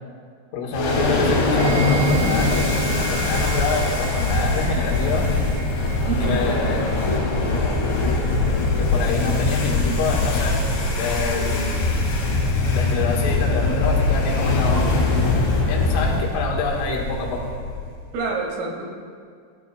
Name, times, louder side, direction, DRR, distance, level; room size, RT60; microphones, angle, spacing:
voice 1, 0.5-5.3 6.2-6.9 8.8-10.6 11.0-11.8 12.7-14.9 15.7-17.5, left 3 dB, 80° left, -1 dB, 4.0 m, -26 dB
sound 1, 0.7-18.1, left 2 dB, 50° left, 2.7 m, -22 dB
sound 2, 1.6-10.3, right 6 dB, 55° right, 2.7 m, -38 dB
sound 3, 4.3-5.9, right 2 dB, 10° right, 2.0 m, -30 dB
voice 2, 6.1-6.6 18.1-18.9, right 4 dB, 75° right, 0 dB, 4.5 m, -27 dB
22.0 x 14.0 x 2.3 m, 2.1 s
omnidirectional pair, 5.8 m